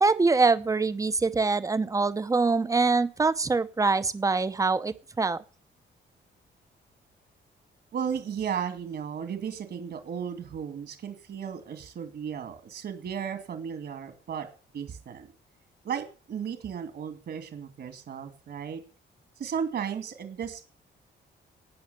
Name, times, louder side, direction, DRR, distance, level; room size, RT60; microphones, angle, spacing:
voice 1, 0.0-5.4, right 4 dB, 15° right, 14 dB, 0.8 m, -24 dB
voice 2, 7.9-14.5 14.7-15.3 15.8-18.8 19.4-20.7, right 7 dB, 60° right, 8 dB, 2.5 m, -35 dB
18.5 x 6.5 x 8.1 m, 0.37 s
wide cardioid pair, 175°, 20 cm